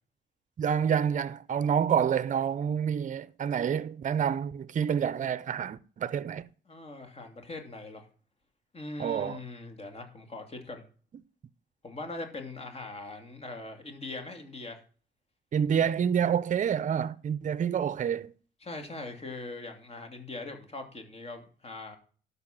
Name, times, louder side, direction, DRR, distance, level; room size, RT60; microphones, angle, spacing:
voice 1, 0.6-6.5 9.0-9.4 15.5-18.3, right 8 dB, 40° right, 0.6 m, -28 dB
voice 2, 6.7-8.1 8.7-10.8 11.8-14.8 15.7-15.9 18.6-22.0, left 2 dB, 30° left, 2.7 m, -41 dB
12.0 x 5.6 x 5.8 m
cardioid pair, 90°, 19 cm